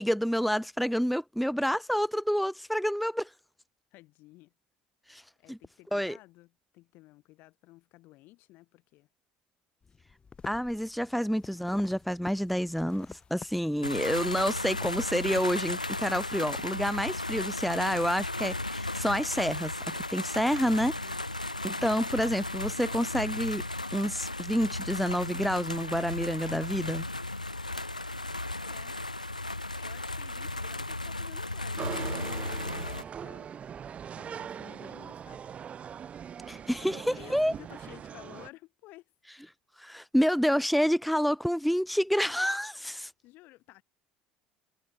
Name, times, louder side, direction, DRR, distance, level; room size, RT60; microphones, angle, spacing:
voice 1, 0.0-3.3 5.1-5.2 5.5-5.6 5.9-6.2 10.5-20.9 21.6-23.6 23.9-27.0 36.5-37.5 39.8-43.1, equal, ahead, 0.5 m, -28 dB
voice 2, 3.9-4.5 5.4-9.1 11.0-11.1 11.5-11.7 20.9-21.2 28.6-29.0 29.7-33.5 34.1-35.5 36.8-39.1 43.2-43.8, left 19 dB, 55° left, 2.7 m, -53 dB
sound 1, 9.8-17.2, left 5 dB, 25° left, 4.8 m, -51 dB
sound 2, 13.8-33.0, left 2 dB, 90° left, 0.4 m, -35 dB
sound 3, 31.8-38.5, right 8 dB, 35° right, 0.8 m, -41 dB
figure-of-eight pair, 65°, 4 cm